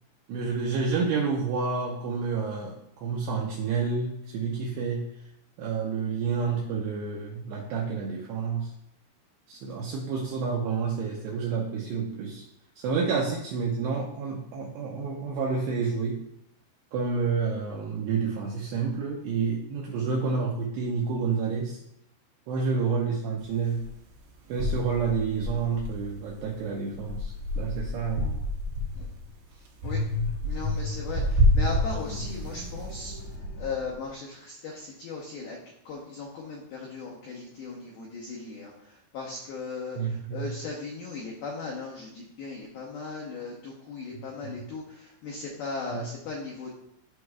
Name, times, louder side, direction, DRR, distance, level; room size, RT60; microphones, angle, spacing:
voice 1, 0.3-5.1 5.6-8.7 9.5-12.4 12.8-16.2 16.9-21.8 22.5-23.8 24.5-28.4 40.0-40.5 44.4-44.5 45.9-46.1, right 5 dB, 90° right, -2 dB, 2.4 m, -29 dB
sound 1, 23.8-23.9 24.6-26.4 26.9-29.2 29.8-32.6, left 1 dB, 70° right, 2.8 m, -27 dB
voice 2, 29.5-30.0 30.4-33.1 33.6-35.6 35.9-46.7, left 4 dB, 85° left, -3 dB, 2.1 m, -37 dB
sound 2, 32.0-34.2, right 1 dB, 65° left, 1.5 m, -39 dB
12.0 x 4.7 x 2.2 m, 0.76 s
omnidirectional pair, 5.7 m